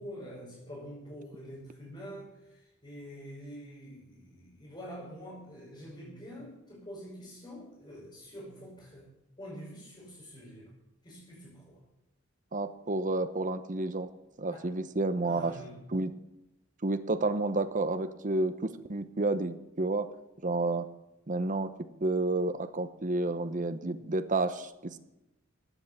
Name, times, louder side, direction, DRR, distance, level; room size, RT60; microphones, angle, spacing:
voice 1, 0.0-9.1 9.4-10.7 11.0-11.8 14.5-14.8 15.3-15.8, equal, 25° left, -8 dB, 6.1 m, -46 dB
voice 2, 12.5-14.1 14.4-15.5 15.9-16.1 16.8-20.1 20.4-20.9 21.3-21.7 22.0-25.0, right 2 dB, 40° right, 11 dB, 0.9 m, -30 dB
16.0 x 9.3 x 7.3 m, 0.93 s
head